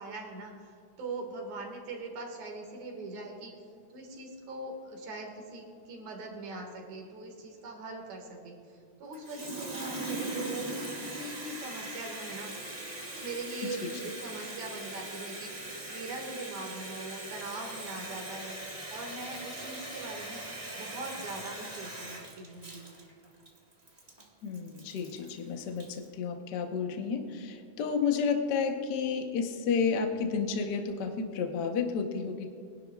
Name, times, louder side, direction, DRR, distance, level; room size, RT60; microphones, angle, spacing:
voice 1, 0.0-3.5 3.9-10.7 11.0-12.5 13.2-20.4 20.8-22.9, right 2 dB, 75° right, 1 dB, 3.2 m, -41 dB
Water tap faucet, 9.1-26.0, right 2 dB, 40° right, 0.5 m, -40 dB
voice 2, 24.4-32.5, left 5 dB, 65° left, 4 dB, 1.0 m, -31 dB
23.5 x 11.0 x 2.4 m, 2.3 s
omnidirectional pair, 3.3 m